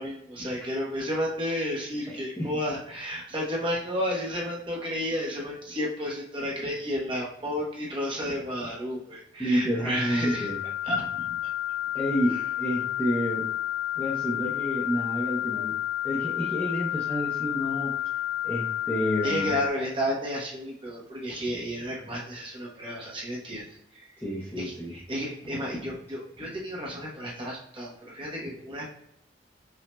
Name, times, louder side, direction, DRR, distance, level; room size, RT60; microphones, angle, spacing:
voice 1, 0.0-10.5 10.8-11.4 12.3-12.4 19.2-23.7 23.9-24.1 24.6-28.9, equal, 25° right, -3 dB, 1.0 m, -32 dB
voice 2, 9.4-10.6 11.9-13.5 14.0-15.7 16.0-18.0 18.4-19.5 24.2-24.9, equal, 10° left, -6 dB, 0.8 m, -29 dB
sound 1, 9.7-19.7, left 13 dB, 75° left, 0.3 m, -31 dB
5.8 x 2.7 x 2.2 m, 0.76 s
head